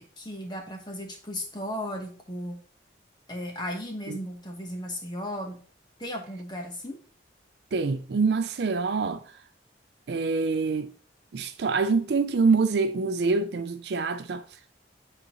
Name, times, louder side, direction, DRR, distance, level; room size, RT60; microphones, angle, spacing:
voice 1, 0.0-2.6 3.3-5.6 6.0-7.0, equal, 25° left, 1.1 m, -35 dB
voice 2, 7.7-9.4 10.1-10.9 11.3-14.4, right 4 dB, 60° right, 0.4 m, -25 dB
8.6 x 3.9 x 3.0 m
head